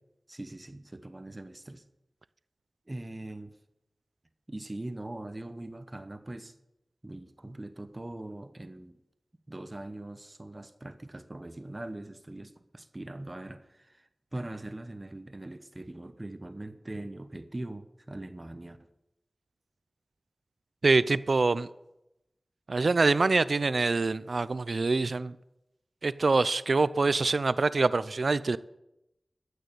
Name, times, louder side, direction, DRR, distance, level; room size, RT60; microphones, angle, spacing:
voice 1, 0.3-1.8 2.9-3.6 4.5-6.5 7.0-9.0 9.5-18.9, right 1 dB, 30° right, 1.0 m, -41 dB
voice 2, 20.8-21.7 22.7-25.4 26.0-28.6, right 3 dB, 70° right, 0.5 m, -25 dB
14.0 x 6.6 x 8.4 m
wide cardioid pair, 65°, 0 cm